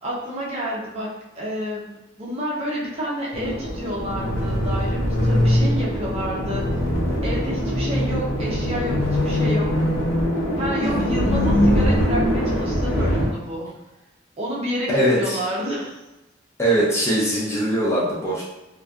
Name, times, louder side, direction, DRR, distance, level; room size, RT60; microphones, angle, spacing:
voice 1, 0.0-1.9 2.2-6.7 7.2-9.7 10.6-13.7 14.4-16.0, equal, 30° right, -5 dB, 0.6 m, -29 dB
sound 1, 3.3-13.3, equal, 85° left, 0.7 m, -22 dB
voice 2, 14.9-15.4 16.6-18.4, right 1 dB, 15° left, -6 dB, 0.4 m, -21 dB
2.6 x 2.3 x 2.3 m, 1.0 s
head